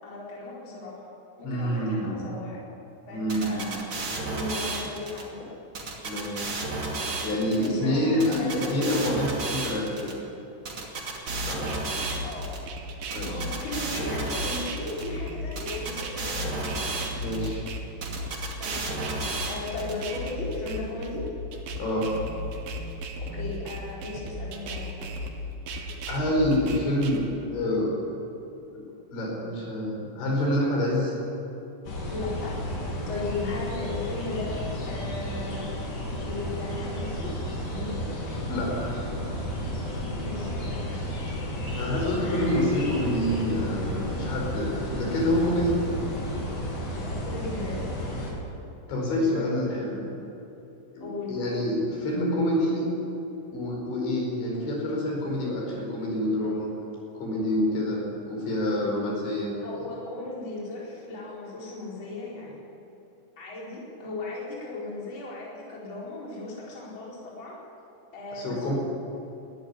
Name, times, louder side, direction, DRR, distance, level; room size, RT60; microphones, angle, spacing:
voice 1, 0.0-1.1 1.4-2.6 3.1-3.7 4.3-5.4 7.6-8.8 12.2-12.5 13.3-16.7 18.6-21.3 23.3-25.1 32.1-32.6 33.1-35.6 36.2-38.0 40.2-40.9 46.9-47.9 51.0-51.3 59.6-62.6 63.4-67.6 68.1-68.7, left 2 dB, 25° left, -5 dB, 4.8 m, -36 dB
voice 2, 1.4-2.3 3.1-3.8 6.0-6.7 7.2-10.1 11.5-11.6 13.1-13.4 17.2-17.6 21.8-22.1 26.1-27.3 27.5-28.0 28.7-28.8 29.1-31.2 38.5-39.0 41.8-45.8 48.9-50.1 51.0-52.9 53.5-56.7 57.2-59.6 68.3-68.7, left 1 dB, 70° left, -1 dB, 7.2 m, -27 dB
sound 1, 3.3-5.2 5.7-7.7 8.2-10.1 10.7-12.6 13.1-15.0 15.6-17.5 18.0-19.9, right 3 dB, 35° right, 2.4 m, -32 dB
sound 2, 11.3-27.3, equal, 60° right, 3.0 m, -36 dB
sound 3, 31.8-48.3, left 1 dB, 45° left, 4.7 m, -32 dB
20.5 x 13.5 x 9.8 m, 3.0 s
omnidirectional pair, 5.6 m